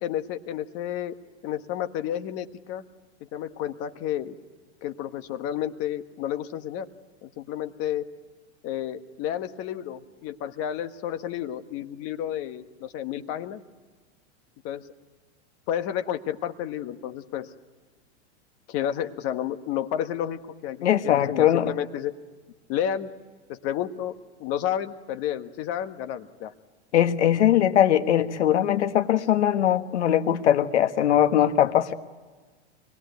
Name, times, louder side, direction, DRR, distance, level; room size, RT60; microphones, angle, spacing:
voice 1, 0.0-1.1 1.4-2.8 3.3-4.3 4.8-6.9 7.2-8.1 8.6-13.6 14.6-14.8 15.7-17.5 18.7-22.1 22.7-23.1 23.5-24.1 24.4-26.5, left 10 dB, 45° left, 9 dB, 1.5 m, -31 dB
voice 2, 20.8-21.7 26.9-31.9, left 11 dB, 80° left, 9 dB, 1.5 m, -21 dB
25.0 x 20.5 x 9.4 m, 1.4 s
hypercardioid pair, 120°, 34 cm